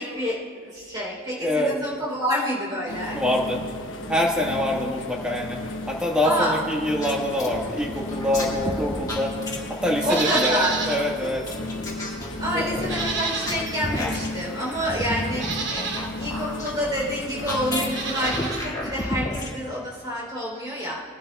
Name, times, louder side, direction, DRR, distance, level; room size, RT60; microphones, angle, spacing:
voice 1, 0.0-3.2 6.2-6.6 10.0-10.8 12.4-15.5 16.2-21.0, equal, 20° right, -4 dB, 3.2 m, -28 dB
voice 2, 1.4-1.7 3.1-3.6 4.1-5.6 5.9-9.3 9.7-11.5 12.5-12.6, left 1 dB, 5° right, -2 dB, 1.3 m, -25 dB
sound 1, 2.9-18.4, left 2 dB, 65° left, 1.1 m, -34 dB
sound 2, 7.0-9.9 10.8-19.5, left 1 dB, 15° left, 1.8 m, -33 dB
Livestock farm animals working animals, 10.0-11.1 11.5-11.6 12.8-13.9 14.7-14.8 15.3-16.1 17.8-18.7 19.0-19.1, right 4 dB, 55° right, 1.0 m, -29 dB
21.5 x 11.5 x 2.2 m, 2.1 s
head